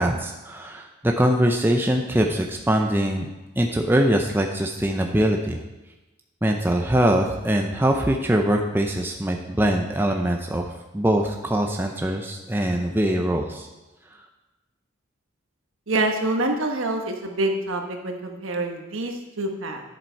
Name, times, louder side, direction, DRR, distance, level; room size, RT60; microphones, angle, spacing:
voice 1, 0.0-3.3 3.6-5.6 6.4-13.7, right 1 dB, 10° right, 2 dB, 0.5 m, -22 dB
voice 2, 15.9-19.8, right 2 dB, 70° right, 3 dB, 1.2 m, -26 dB
10.5 x 7.4 x 4.6 m, 1.1 s
head